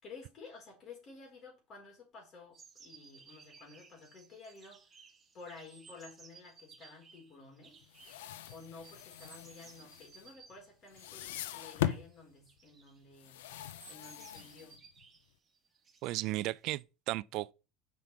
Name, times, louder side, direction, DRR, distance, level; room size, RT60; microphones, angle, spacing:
voice 1, 0.0-4.8 5.3-7.8 8.5-13.4 13.9-14.8, left 4 dB, 40° left, 4.7 m, -53 dB
sound 1, 2.5-16.8, right 5 dB, 20° right, 1.9 m, -59 dB
sound 2, 7.8-10.6 10.9-12.1 13.2-15.1, left 12 dB, 90° left, 0.6 m, -40 dB
voice 2, 16.0-17.5, right 18 dB, 60° right, 0.3 m, -35 dB
5.8 x 5.8 x 4.8 m
supercardioid pair, 110°, 0 cm